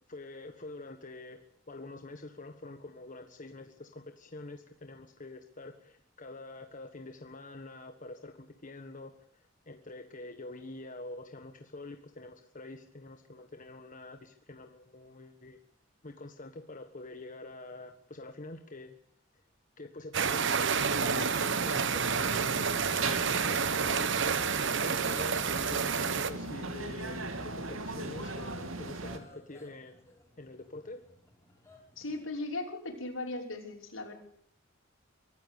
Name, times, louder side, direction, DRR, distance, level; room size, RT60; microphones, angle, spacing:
voice 1, 0.1-1.4 1.7-15.6 16.0-19.0 19.8-22.6 23.4-30.1 30.4-31.0, left 2 dB, 40° left, 6 dB, 1.5 m, -46 dB
sound 1, 20.1-26.3, right 6 dB, 65° right, 1.2 m, -29 dB
sound 2, 20.8-29.2, right 2 dB, 85° right, 2.6 m, -37 dB
sound 3, 25.1-32.2, left 1 dB, 15° left, 5.2 m, -58 dB
voice 2, 32.0-34.1, left 2 dB, 80° left, 2 dB, 5.8 m, -37 dB
24.0 x 14.0 x 8.4 m, 0.63 s
head